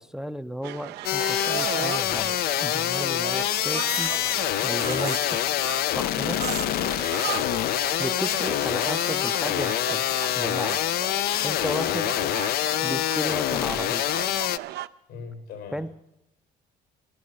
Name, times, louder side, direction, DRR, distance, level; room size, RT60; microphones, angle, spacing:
voice 1, 0.0-4.1 4.6-5.4 5.9-6.4 8.0-10.1 10.3-10.8 11.4-12.1 12.8-14.0 15.7-15.9, equal, 5° right, 11 dB, 0.5 m, -33 dB
sound 1, 0.6-14.9, right 15 dB, 80° right, 0.5 m, -37 dB
sound 2, 1.0-14.6, left 14 dB, 65° left, 0.4 m, -26 dB
sound 3, 2.2-3.3 3.9-4.1 4.8-5.3 6.4-6.7 7.0-7.4 8.8-10.3, right 7 dB, 40° right, 0.8 m, -38 dB
voice 2, 6.4-7.6 12.0-12.2 15.1-15.8, left 6 dB, 90° left, 5 dB, 5.2 m, -40 dB
14.0 x 12.5 x 6.3 m, 0.86 s
cardioid pair, 110°, 17 cm